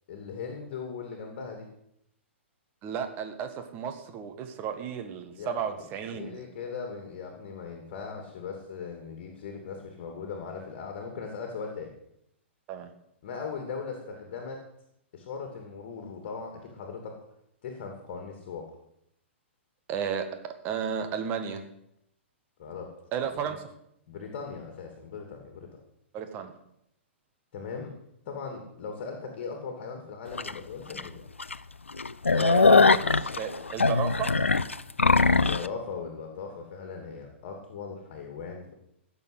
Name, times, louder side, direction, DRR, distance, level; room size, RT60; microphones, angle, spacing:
voice 1, 0.1-1.7 5.3-5.8 6.1-11.9 13.2-14.6 15.1-17.2 17.6-18.7 22.6-22.9 23.5-23.6 24.1-25.8 27.5-27.9 28.3-31.2 35.2-38.7, left 5 dB, 45° left, 3 dB, 2.7 m, -39 dB
voice 2, 2.8-6.4 12.7-12.9 19.9-20.2 20.6-21.6 23.1-23.6 26.1-26.5 32.3-34.3, right 8 dB, 30° right, 6 dB, 1.7 m, -33 dB
sound 1, 30.4-30.5 31.0-31.1 31.4-31.5 31.9-35.7, left 4 dB, 80° left, 0.6 m, -21 dB
16.0 x 7.0 x 8.0 m, 0.77 s
figure-of-eight pair, 115°, 7 cm